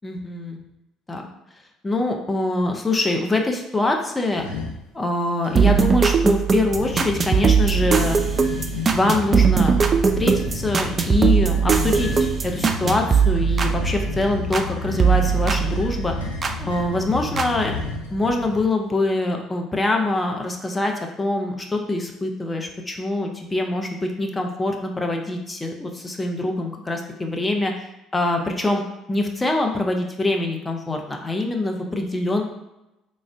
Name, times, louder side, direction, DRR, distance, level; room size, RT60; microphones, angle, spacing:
voice 1, 0.0-0.6 1.1-1.3 1.8-4.5 4.9-8.2 8.9-9.8 10.2-16.1 16.6-17.7 18.1-27.7 28.1-28.8 29.1-32.4, left 2 dB, 20° left, 2 dB, 0.5 m, -24 dB
sound 1, 4.3-4.8 5.4-6.1 6.7-18.7, left 3 dB, 85° left, 0.5 m, -31 dB
sound 2, 5.6-14.7 15.0-16.6 17.4-17.5, right 6 dB, 35° right, 0.3 m, -20 dB
3.6 x 2.1 x 3.4 m, 0.94 s
hypercardioid pair, 55°, 0 cm